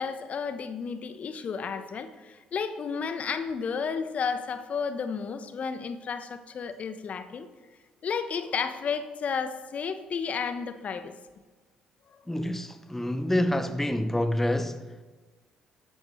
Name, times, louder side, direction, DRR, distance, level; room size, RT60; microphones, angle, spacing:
voice 1, 0.0-7.5 8.0-11.1 12.1-12.2, left 6 dB, 45° left, 1.0 m, -32 dB
voice 2, 12.3-15.0, left 1 dB, 10° left, 0.7 m, -27 dB
13.5 x 11.0 x 3.2 m
hypercardioid pair, 50°, 3 cm